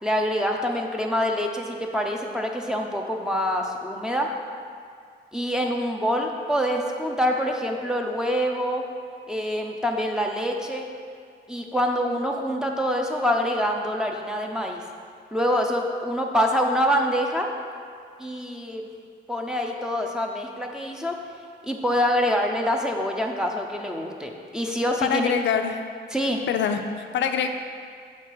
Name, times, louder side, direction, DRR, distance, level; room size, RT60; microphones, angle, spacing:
voice 1, 0.0-4.3 5.3-8.9 9.3-10.9 11.5-14.8 15.3-17.5 18.2-18.8 19.3-21.2 21.6-25.3 26.1-26.4, equal, 5° right, 0 dB, 0.7 m, -25 dB
voice 2, 25.0-25.8 26.5-27.5, left 7 dB, 75° left, 6 dB, 0.5 m, -24 dB
6.6 x 4.5 x 4.6 m, 2.2 s
cardioid pair, 70°, 19 cm